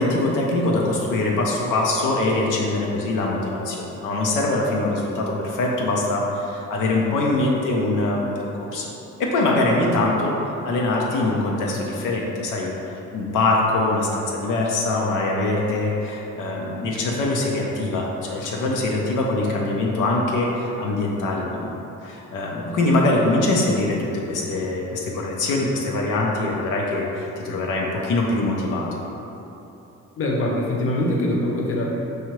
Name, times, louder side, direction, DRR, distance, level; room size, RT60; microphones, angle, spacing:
voice 1, 0.0-8.9 9.2-10.4 10.6-12.7 13.1-28.9, left 2 dB, 90° left, -2 dB, 0.5 m, -23 dB
voice 2, 30.2-31.9, left 1 dB, 45° left, -2 dB, 0.7 m, -23 dB
4.7 x 2.7 x 3.0 m, 3.0 s
cardioid pair, 90°, 30 cm